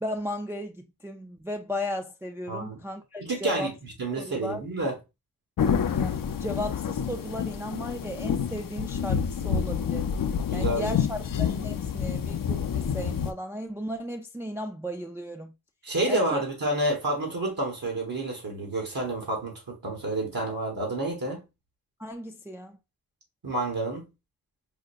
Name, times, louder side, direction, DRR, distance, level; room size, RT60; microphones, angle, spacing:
voice 1, 0.0-3.7 4.2-4.6 5.9-10.1 10.5-15.5 16.1-16.4 22.0-22.8, left 1 dB, 5° right, 0.4 m, -35 dB
voice 2, 2.5-2.8 3.2-4.9 10.5-11.0 15.8-21.4 23.4-24.0, right 2 dB, 65° right, 1.3 m, -29 dB
sound 1, 5.6-13.3, left 7 dB, 60° left, 0.5 m, -28 dB
4.9 x 2.2 x 2.5 m
wide cardioid pair, 65°, 37 cm